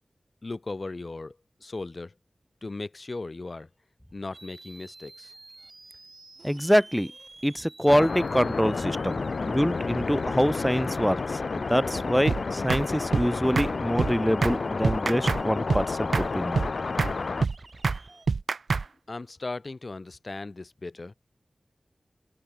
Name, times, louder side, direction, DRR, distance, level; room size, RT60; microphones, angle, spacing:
voice 1, 0.4-2.1 2.6-3.7 4.1-5.3 19.1-21.1, left 3 dB, 55° left, 1.1 m, -37 dB
sound 1, 4.3-18.3, right 2 dB, 50° right, 4.1 m, -50 dB
voice 2, 6.4-7.1 7.4-9.2 9.4-11.2 11.5-16.7, equal, ahead, 1.5 m, -25 dB
sound 2, 7.9-17.4, left 4 dB, 80° left, 1.3 m, -30 dB
sound 3, 12.3-12.4 12.7-12.8 13.1-13.3 13.5-13.7 14.0-14.1 14.4-14.6 14.8-15.4 15.7-15.8 16.1-16.3 16.5-16.7 17.0-17.1 17.4-17.5 17.8-18.0 18.3-18.8, right 4 dB, 85° right, 0.8 m, -25 dB
open air
cardioid pair, 50°, 0 cm